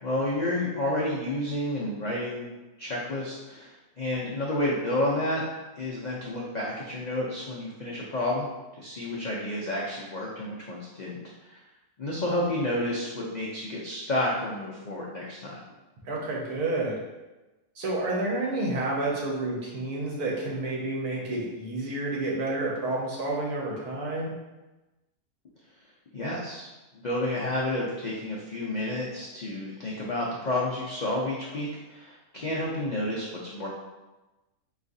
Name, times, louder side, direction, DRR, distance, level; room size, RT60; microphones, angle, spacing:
voice 1, 0.0-2.5 2.8-5.4 5.7-8.5 8.8-11.6 12.0-15.6 26.1-26.7 26.9-33.3 33.5-33.7, left 1 dB, 85° left, -5 dB, 0.3 m, -30 dB
voice 2, 16.1-17.0 17.8-24.3, right 2 dB, 80° right, -3 dB, 1.4 m, -30 dB
4.8 x 3.0 x 2.6 m, 1.1 s
omnidirectional pair, 1.6 m